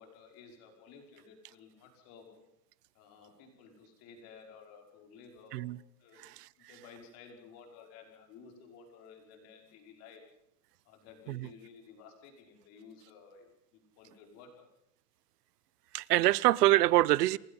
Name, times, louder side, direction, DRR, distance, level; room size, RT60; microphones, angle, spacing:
voice 1, 0.0-2.4 2.9-5.7 6.0-6.3 6.6-10.2 10.9-14.7, left 5 dB, 30° left, 5.5 m, -54 dB
voice 2, 6.2-6.5 11.3-11.5 15.9-17.4, right 16 dB, 75° right, 0.9 m, -25 dB
28.5 x 20.5 x 5.6 m
supercardioid pair, 180°, 48 cm